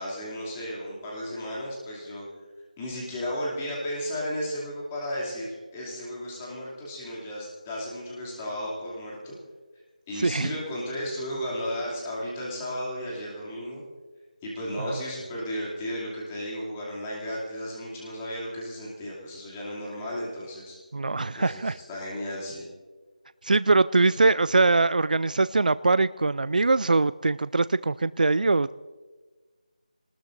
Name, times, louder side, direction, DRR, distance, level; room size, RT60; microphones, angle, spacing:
voice 1, 0.0-2.2 2.8-9.4 10.1-13.8 14.4-20.8 21.3-22.6, equal, 10° left, -5 dB, 2.7 m, -34 dB
voice 2, 10.2-10.5 20.9-21.8 23.4-28.7, right 3 dB, 75° right, 16 dB, 0.4 m, -22 dB
24.0 x 19.5 x 2.6 m, 1.4 s
figure-of-eight pair, 175°, 4 cm